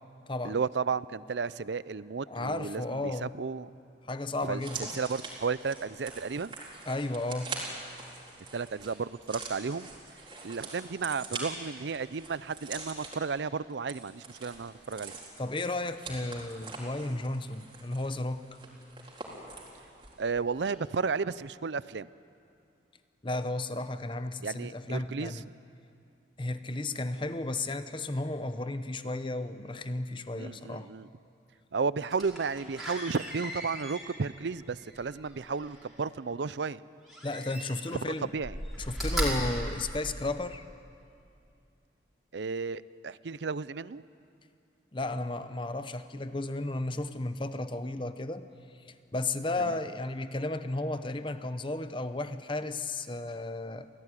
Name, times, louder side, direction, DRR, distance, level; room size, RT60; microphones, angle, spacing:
voice 1, 0.4-3.7 4.4-6.5 8.5-9.9 10.4-15.2 20.2-22.1 24.4-25.4 30.3-31.1 31.7-36.8 38.3-38.6 39.2-39.4 42.3-44.0 49.6-49.8, right 5 dB, 75° right, 17 dB, 0.5 m, -33 dB
voice 2, 2.3-3.3 4.0-4.9 6.8-7.6 15.4-18.5 23.2-25.5 26.4-30.9 37.2-38.3 38.9-40.6 44.9-48.5 49.1-53.9, left 2 dB, 25° left, 11 dB, 0.9 m, -34 dB
sound 1, 4.6-20.3 20.5-20.7, right 3 dB, 25° right, 4.2 m, -44 dB
Slam, 32.1-35.9 37.0-38.0 38.3-40.6 41.1-41.2, equal, ahead, 5.1 m, -37 dB
27.0 x 17.0 x 9.9 m, 2.5 s
head